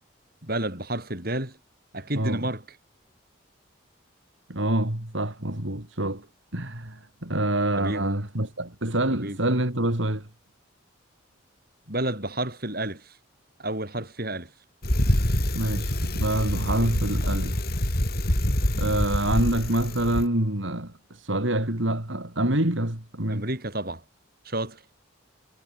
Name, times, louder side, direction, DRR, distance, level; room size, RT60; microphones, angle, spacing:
voice 1, 0.4-1.6 1.9-2.6 7.8-8.1 9.1-9.4 11.9-13.2 13.6-14.5 23.3-24.0 24.4-24.8, right 1 dB, 45° right, 7.4 m, -30 dB
voice 2, 4.5-6.3 6.5-10.3 15.5-17.6 18.8-23.5, right 1 dB, 65° right, 3.5 m, -26 dB
Bicycle, 14.8-20.3, left 1 dB, 45° left, 4.5 m, -26 dB
head